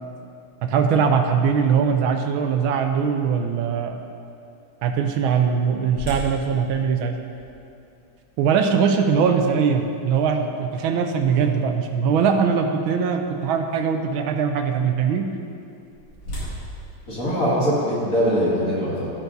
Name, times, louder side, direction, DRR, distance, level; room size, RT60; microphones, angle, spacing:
voice 1, 0.6-4.0 4.8-7.2 8.4-15.3, right 6 dB, 85° right, 5 dB, 1.5 m, -21 dB
sound 1, 5.9-11.9 12.4-12.5 13.1-13.4 15.4-18.1, equal, 75° left, 3.2 m, -39 dB
voice 2, 17.1-19.1, equal, 40° left, -8 dB, 2.4 m, -22 dB
16.0 x 5.9 x 2.7 m, 2.6 s
omnidirectional pair, 2.2 m